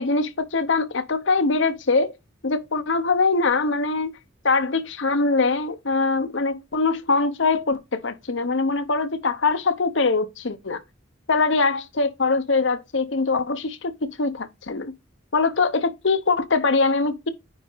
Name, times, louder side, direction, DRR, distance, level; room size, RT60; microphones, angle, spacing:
voice 1, 0.0-2.1 2.4-4.1 4.4-10.8 11.3-14.9 15.3-17.3, left 3 dB, 65° left, 0.9 m, -22 dB
9.7 x 4.1 x 3.9 m
head